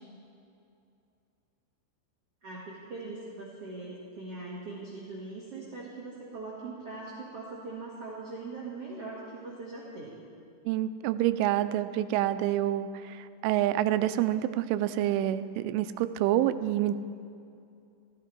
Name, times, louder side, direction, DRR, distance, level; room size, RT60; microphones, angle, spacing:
voice 1, 2.4-10.2, right 3 dB, 65° right, -5 dB, 1.5 m, -41 dB
voice 2, 10.7-16.9, right 13 dB, 85° right, 12 dB, 3.0 m, -27 dB
15.0 x 14.5 x 4.5 m, 2.5 s
omnidirectional pair, 5.5 m